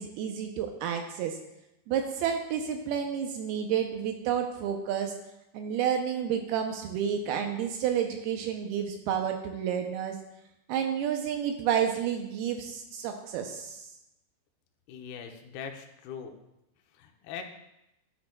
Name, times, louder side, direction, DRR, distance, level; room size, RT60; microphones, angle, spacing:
voice 1, 0.0-1.4 1.9-5.2 5.5-10.2 10.7-13.9, right 8 dB, 80° right, 4 dB, 2.3 m, -30 dB
voice 2, 14.9-16.3 17.0-17.4, left 7 dB, 75° left, 3 dB, 2.4 m, -41 dB
11.5 x 8.3 x 2.2 m, 0.88 s
omnidirectional pair, 5.0 m